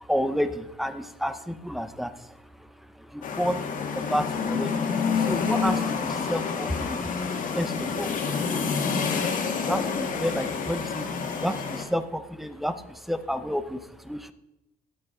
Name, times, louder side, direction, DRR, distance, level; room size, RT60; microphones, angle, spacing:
voice 1, 0.0-2.7 2.9-9.2 9.6-11.1 11.4-14.3, equal, ahead, 11 dB, 0.7 m, -31 dB
sound 1, 3.2-11.8, left 5 dB, 50° left, 1.9 m, -28 dB
17.5 x 6.5 x 3.7 m, 0.93 s
cardioid pair, 110°, 17 cm